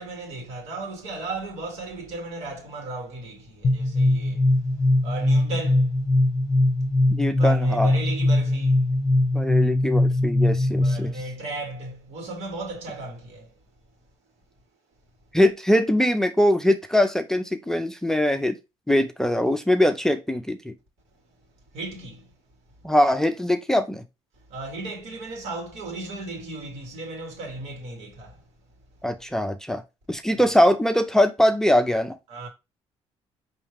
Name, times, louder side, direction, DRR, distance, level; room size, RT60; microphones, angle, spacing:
voice 1, 0.0-6.0 7.3-9.1 10.7-13.5 21.7-22.3 24.5-28.5 32.3-32.5, right 2 dB, 75° right, 2.0 m, -35 dB
sound 1, 3.6-11.2, left 1 dB, 30° left, 1.1 m, -21 dB
voice 2, 7.1-7.9 9.3-11.1 15.3-18.5 18.9-20.7 22.8-24.0 29.0-29.8 30.1-32.1, left 1 dB, 5° left, 0.5 m, -22 dB
4.6 x 3.1 x 3.3 m
cardioid pair, 100°, 11 cm